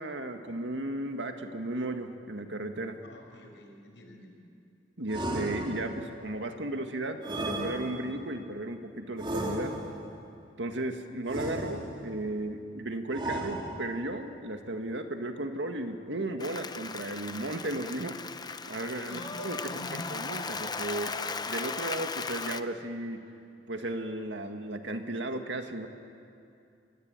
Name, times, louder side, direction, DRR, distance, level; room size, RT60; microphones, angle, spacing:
voice 1, 0.0-3.0 5.0-9.8 10.6-18.2 18.7-19.6 19.9-21.2 21.5-23.2 23.7-25.9, right 1 dB, 90° right, 6 dB, 1.9 m, -35 dB
voice 2, 3.0-4.4 19.0-20.2, left 1 dB, 85° left, 3 dB, 5.4 m, -46 dB
sound 1, 5.1-6.2 7.2-8.3 9.2-10.1 11.3-12.2 13.1-14.1, right 1 dB, 30° right, 3.6 m, -35 dB
Applause, 16.4-22.6, left 4 dB, 25° left, 0.7 m, -37 dB
25.5 x 22.0 x 9.1 m, 2.6 s
head